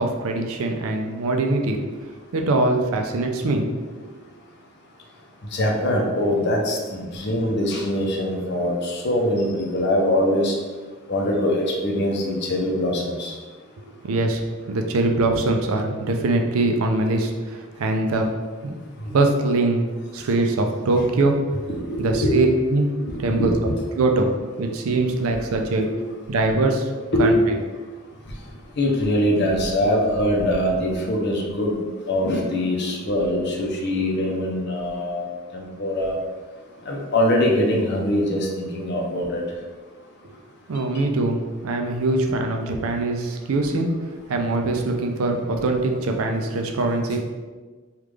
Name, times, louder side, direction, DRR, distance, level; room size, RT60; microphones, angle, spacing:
voice 1, 0.0-1.8 2.3-3.7 4.0-4.1 13.8-18.3 18.6-18.7 19.1-19.8 20.1-21.4 22.0-22.9 23.2-23.5 24.0-24.3 24.6-25.9 26.3-26.9 27.2-27.4 40.2-40.3 40.7-43.9 44.3-47.2, right 2 dB, 85° right, 3 dB, 0.4 m, -22 dB
voice 2, 5.5-10.6 11.1-13.3 21.7-22.3 23.1-23.5 25.8-25.9 27.1-27.3 28.8-31.7 32.1-35.3 35.5-36.1 36.9-39.4 46.4-46.5, left 1 dB, 55° left, 0 dB, 0.6 m, -23 dB
3.4 x 2.4 x 3.2 m, 1.4 s
head